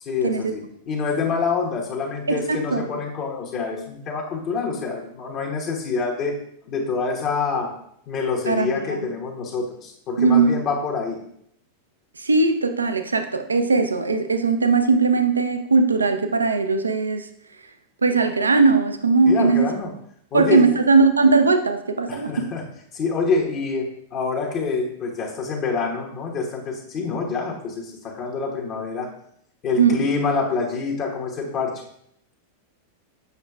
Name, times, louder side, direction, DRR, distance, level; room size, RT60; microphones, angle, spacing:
voice 1, 0.0-6.3 6.7-7.7 8.1-11.2 19.3-19.9 20.3-20.8 22.1-22.6 22.9-29.1 29.6-31.7, left 4 dB, 35° left, -1 dB, 1.1 m, -26 dB
voice 2, 2.3-2.9 8.5-8.8 10.2-10.6 12.2-17.3 18.0-19.7 20.3-22.5 29.8-30.1, right 4 dB, 75° right, 8 dB, 0.5 m, -19 dB
8.0 x 6.1 x 2.3 m, 0.70 s
figure-of-eight pair, 90°, 0 cm